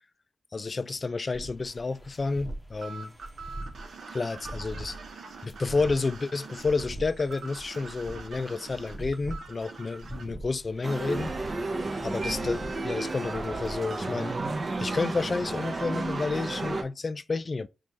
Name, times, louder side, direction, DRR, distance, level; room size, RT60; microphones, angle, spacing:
voice 1, 0.5-3.1 4.1-5.1 5.4-11.3 12.0-14.4 14.8-17.7, left 3 dB, 45° left, 0.3 m, -30 dB
sound 1, 1.3-13.8, right 1 dB, ahead, 1.0 m, -43 dB
sound 2, 2.8-10.2, right 4 dB, 80° right, 0.8 m, -44 dB
sound 3, 10.8-16.8, right 2 dB, 45° right, 0.6 m, -32 dB
6.2 x 2.3 x 2.7 m
cardioid pair, 70°, 0 cm